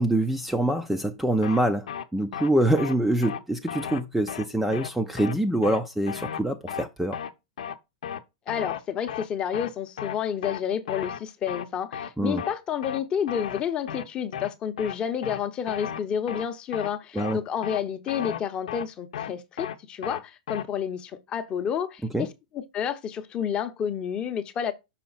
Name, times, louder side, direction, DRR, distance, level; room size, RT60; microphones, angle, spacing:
voice 1, 0.0-1.9 2.1-7.2 12.2-12.4 17.1-17.4 22.1-22.3, right 1 dB, 5° right, 0.5 m, -25 dB
sound 1, 1.4-1.6 1.9-2.0 2.3-2.5 2.8-2.9 3.2-3.4 3.7-4.0 4.3-4.4 4.7-4.9 5.2-5.3 5.6-5.8 6.1-6.4 6.7-6.8 7.1-7.3 7.6-7.8 8.0-8.2 8.5-8.8 9.1-9.3 9.5-9.7 10.0-10.2 10.4-10.6 10.9-11.2 11.5-11.7 11.9-12.1 12.4-12.5 12.8-13.0 13.3-13.6 13.9-14.0 14.3-14.5 14.8-14.9 15.2-15.4 15.7-16.0 16.3-16.5 16.7-16.9 17.2-17.3 17.6-17.8 18.1-18.4 18.7-18.8 19.1-19.3 19.6-19.8 20.0-20.2 20.5-20.6, left 9 dB, 80° left, 0.7 m, -34 dB
voice 2, 8.5-22.3 22.5-24.7, left 8 dB, 25° left, 0.8 m, -30 dB
5.9 x 4.2 x 4.0 m
hypercardioid pair, 140°, 4 cm